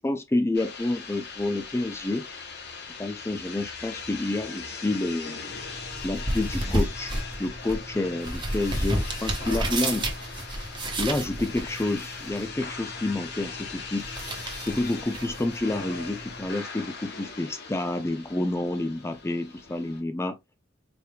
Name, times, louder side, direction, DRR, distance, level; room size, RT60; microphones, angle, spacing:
voice 1, 0.0-2.3 3.0-5.4 6.0-7.1 7.4-10.1 11.0-14.1 14.6-20.4, left 2 dB, 15° left, 0.4 m, -29 dB
sound 1, 0.5-20.0, left 4 dB, 55° left, 1.0 m, -40 dB
sound 2, 5.5-16.5, right 1 dB, 25° right, 1.0 m, -32 dB
4.3 x 3.3 x 2.3 m
head